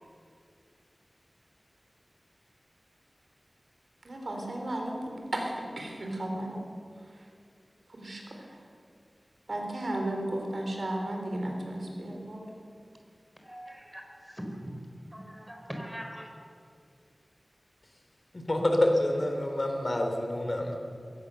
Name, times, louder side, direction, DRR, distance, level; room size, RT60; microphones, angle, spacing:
voice 1, 4.0-6.7 7.2-7.3 7.9-8.6 9.5-12.5, right 1 dB, 65° right, 1 dB, 4.1 m, -34 dB
voice 2, 13.4-14.0 14.3-14.8 15.1-16.3, equal, 5° right, 2 dB, 4.3 m, -41 dB
voice 3, 18.3-20.8, left 1 dB, 45° left, 3 dB, 3.3 m, -27 dB
21.5 x 17.5 x 6.9 m, 2.3 s
wide cardioid pair, 70°, 0 cm